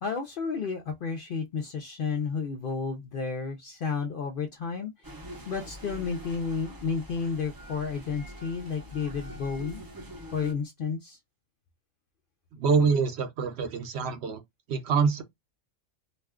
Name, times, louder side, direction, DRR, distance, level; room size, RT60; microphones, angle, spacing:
voice 1, 0.0-4.9 5.5-9.8 10.3-11.2, left 5 dB, 60° left, 0.6 m, -32 dB
sound 1, 5.0-10.5, equal, 30° right, 0.4 m, -44 dB
voice 2, 12.6-14.4 14.7-15.2, right 5 dB, 65° right, 0.8 m, -25 dB
2.4 x 2.2 x 3.4 m
omnidirectional pair, 1.3 m